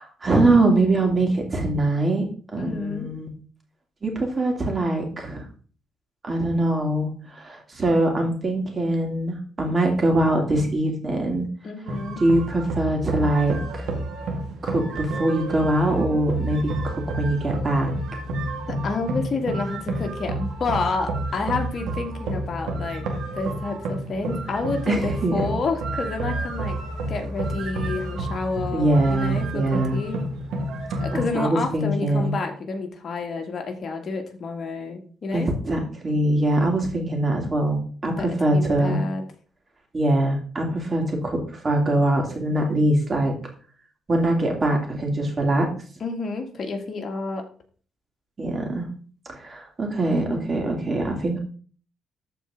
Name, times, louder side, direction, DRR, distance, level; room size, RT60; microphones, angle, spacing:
voice 1, 0.0-3.3 4.0-5.4 6.2-7.1 7.4-11.5 12.2-13.9 14.6-17.9 24.9-25.4 28.7-30.0 31.1-32.3 35.3-39.0 39.9-43.4 44.1-45.7 48.4-48.9 49.3-51.4, right 1 dB, 30° right, 1 dB, 2.9 m, -23 dB
voice 2, 2.6-3.1 11.6-12.2 18.7-23.1 23.3-26.8 27.1-30.2 31.0-35.5 38.1-38.3 38.5-39.2 46.0-47.4, left 3 dB, 50° left, 4 dB, 1.9 m, -29 dB
sound 1, 11.9-31.3, right 2 dB, 85° right, 2.1 m, -30 dB
13.5 x 4.5 x 3.8 m, 0.41 s
cardioid pair, 90°, 0 cm